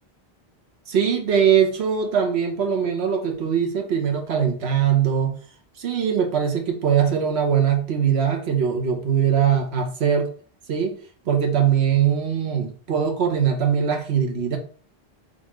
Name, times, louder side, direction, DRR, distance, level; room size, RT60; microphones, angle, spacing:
voice 1, 0.9-5.4 5.8-10.3 10.7-11.0 11.3-14.6, right 8 dB, 85° right, 4 dB, 1.1 m, -21 dB
4.2 x 3.7 x 3.0 m, 0.43 s
omnidirectional pair, 1.0 m